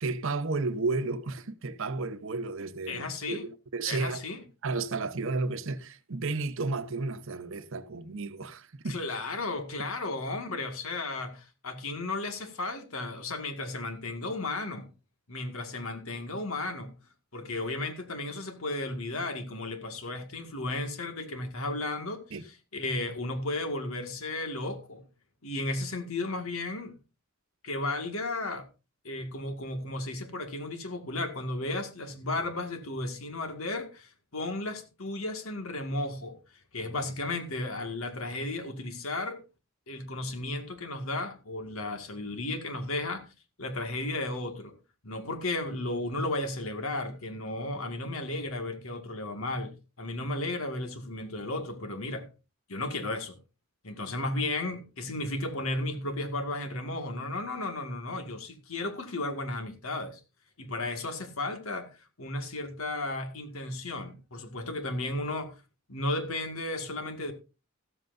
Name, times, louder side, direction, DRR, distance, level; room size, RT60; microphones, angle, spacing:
voice 1, 0.0-4.2 4.6-9.0 22.3-22.4, right 3 dB, 65° right, 0.9 m, -32 dB
voice 2, 2.9-3.5 3.9-4.4 8.9-14.9 15.3-16.9 17.3-25.0 25.4-27.0 27.6-28.7 29.0-36.4 36.7-39.4 39.9-43.3 43.6-44.7 45.0-52.3 52.7-53.4 53.8-60.2 60.6-65.6 65.9-67.3, left 2 dB, 80° left, 2.0 m, -34 dB
14.0 x 13.5 x 2.6 m
head